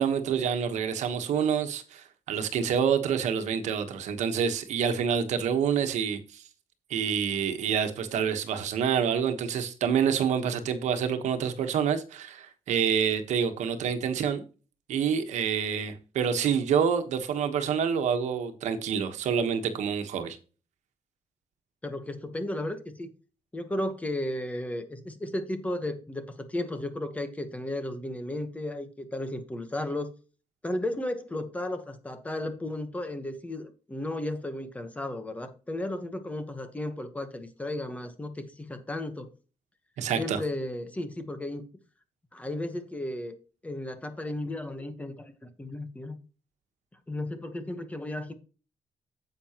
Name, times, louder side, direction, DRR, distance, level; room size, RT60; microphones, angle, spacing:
voice 1, 0.0-6.4 6.9-14.4 14.9-20.4 40.0-40.4, right 7 dB, 85° right, 1.2 m, -27 dB
voice 2, 21.8-23.1 23.5-30.1 30.6-39.3 40.1-41.7 42.3-43.3 43.6-46.2 47.1-48.3, left 1 dB, 10° left, 1.1 m, -34 dB
9.7 x 7.8 x 2.9 m
cardioid pair, 155°, 12 cm